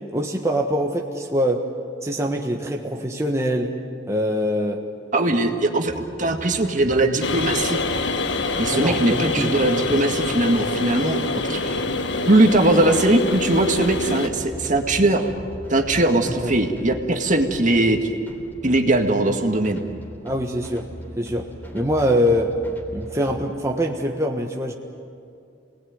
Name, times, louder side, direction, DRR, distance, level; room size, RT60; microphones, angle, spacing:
voice 1, 0.1-1.6 2.0-3.7 4.1-4.8 8.7-9.5 16.3-16.5 20.2-20.9 21.2-21.5 21.7-22.5 22.9-24.7, equal, 15° right, 1 dB, 1.4 m, -23 dB
voice 2, 5.1-7.8 8.6-11.2 11.5-11.8 12.3-15.3 15.7-18.0 18.6-19.8, right 2 dB, 45° right, 4 dB, 2.0 m, -20 dB
sound 1, 5.9-23.5, equal, 10° left, 3.3 m, -40 dB
sound 2, 7.2-14.3, left 3 dB, 85° left, 1.5 m, -25 dB
29.0 x 19.5 x 9.5 m, 2.5 s
head